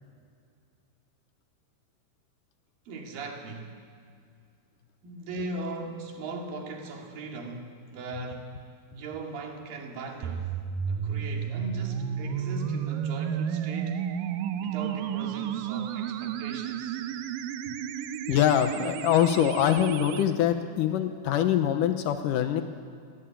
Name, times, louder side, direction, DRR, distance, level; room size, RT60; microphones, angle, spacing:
voice 1, 2.9-3.8 5.0-8.6 8.9-10.5 10.9-14.1 14.6-17.0, right 2 dB, 55° right, 1 dB, 4.0 m, -39 dB
sound 1, 10.2-20.2, right 8 dB, 75° right, 2.0 m, -32 dB
voice 2, 18.3-22.6, left 10 dB, 85° left, 7 dB, 1.9 m, -24 dB
23.5 x 18.5 x 9.0 m, 2.2 s
omnidirectional pair, 5.1 m